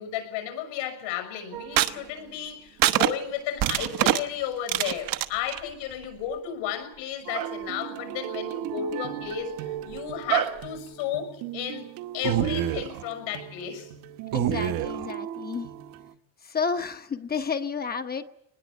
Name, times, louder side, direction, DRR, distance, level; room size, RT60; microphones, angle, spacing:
voice 1, 0.0-11.9 12.1-13.9, left 9 dB, 80° left, 8 dB, 6.4 m, -33 dB
sound 1, 1.5-1.9 2.8-3.1 3.6-4.2 4.7-5.6 7.3-7.5 10.3-10.6 12.2-13.0 14.3-15.1, right 12 dB, 45° right, 1.1 m, -25 dB
sound 2, 7.2-16.1, right 12 dB, 85° right, 2.1 m, -38 dB
voice 2, 14.3-15.7 16.4-18.2, left 5 dB, 20° left, 8 dB, 1.0 m, -31 dB
24.0 x 20.0 x 8.2 m, 0.74 s
cardioid pair, 165°, 45 cm